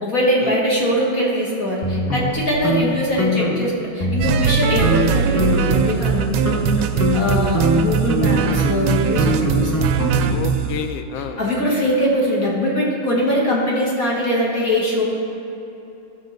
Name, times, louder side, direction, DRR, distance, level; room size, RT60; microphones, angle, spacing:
voice 1, 0.0-6.6 7.1-10.0 11.4-15.0, equal, 45° left, -4 dB, 1.9 m, -21 dB
sound 1, 1.8-2.8 3.2-3.6 4.0-4.5 4.8-5.0 5.4-5.8 6.2-10.5, left 1 dB, 15° left, 0.5 m, -22 dB
sound 2, 4.2-10.8, right 9 dB, 85° right, 1.4 m, -21 dB
voice 2, 10.2-11.4, left 6 dB, 85° left, 7 dB, 0.7 m, -29 dB
15.5 x 6.3 x 4.0 m, 2.9 s
omnidirectional pair, 2.2 m